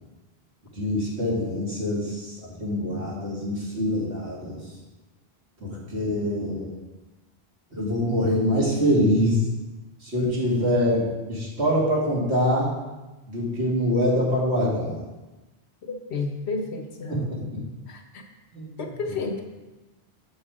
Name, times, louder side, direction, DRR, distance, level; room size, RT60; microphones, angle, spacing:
voice 1, 0.7-4.6 5.6-6.7 7.7-9.4 10.0-12.8 13.3-15.0 17.1-17.6 18.5-18.8 19.1-19.2, equal, 80° right, -5 dB, 2.5 m, -24 dB
voice 2, 16.1-17.3 17.6-18.0 18.8-19.4, left 3 dB, 85° left, 4 dB, 1.3 m, -31 dB
7.0 x 7.0 x 4.9 m, 1.1 s
omnidirectional pair, 1.1 m